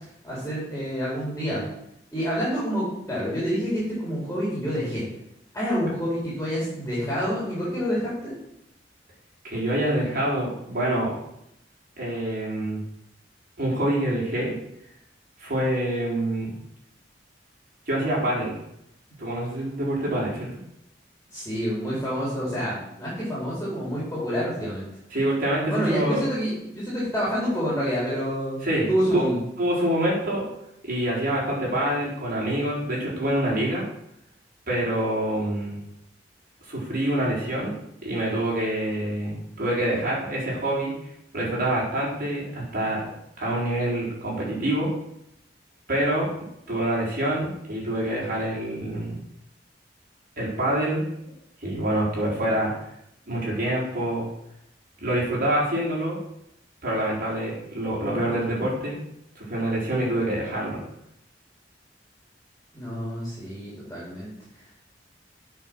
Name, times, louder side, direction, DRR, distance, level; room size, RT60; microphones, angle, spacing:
voice 1, 0.2-1.6 2.1-5.0 5.5-8.3 21.3-24.8 25.7-28.6 28.9-29.4 62.7-64.3, equal, 10° left, -7 dB, 4.0 m, -28 dB
voice 2, 9.4-11.2 12.0-12.8 13.6-14.5 15.4-16.5 17.9-18.6 19.2-20.5 25.1-26.2 28.6-29.2 29.6-30.5 30.8-33.8 34.7-35.8 36.6-37.7 38.0-40.9 41.3-43.1 43.4-44.9 45.9-46.3 46.7-49.2 50.4-51.0 51.6-52.7 53.3-54.3 55.0-56.2 56.8-59.0 59.3-60.8, right 1 dB, 55° right, -4 dB, 4.5 m, -26 dB
9.0 x 5.9 x 6.2 m, 0.78 s
head